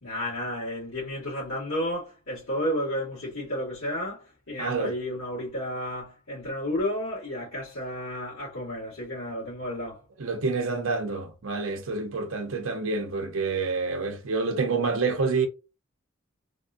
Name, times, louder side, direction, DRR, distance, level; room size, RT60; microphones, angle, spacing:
voice 1, 0.0-10.0, equal, 85° left, 1.9 m, -32 dB
voice 2, 4.6-5.0 10.2-15.5, right 4 dB, 75° right, 0.7 m, -28 dB
3.5 x 2.5 x 2.3 m
head